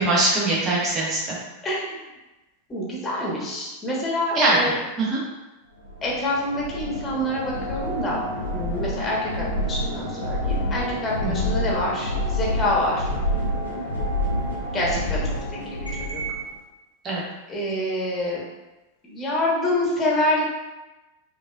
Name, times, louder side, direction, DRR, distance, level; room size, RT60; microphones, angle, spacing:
voice 1, 0.0-1.4 4.3-4.7 5.0-5.2 11.2-11.5 17.0-17.2, right 2 dB, 25° right, -4 dB, 1.1 m, -22 dB
voice 2, 1.6-2.0 2.7-4.8 6.0-8.2 8.5-13.1 14.7-15.2 15.7-16.2 17.5-18.4 19.1-20.4, left 1 dB, 20° left, -4 dB, 1.1 m, -26 dB
sound 1, 5.8-16.4, equal, 90° right, 1.0 m, -28 dB
5.2 x 2.6 x 2.3 m, 1.1 s
figure-of-eight pair, 90°, 0 cm